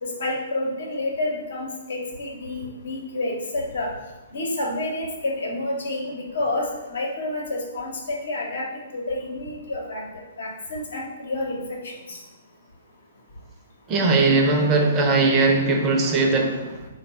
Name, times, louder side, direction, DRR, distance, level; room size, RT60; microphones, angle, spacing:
voice 1, 0.0-3.9 4.3-8.7 8.9-10.0 10.4-12.2, left 2 dB, 70° left, -1 dB, 0.9 m, -29 dB
voice 2, 13.9-16.9, right 3 dB, 25° right, 2 dB, 0.6 m, -20 dB
3.6 x 2.3 x 4.1 m, 1.1 s
hypercardioid pair, 125°, 0 cm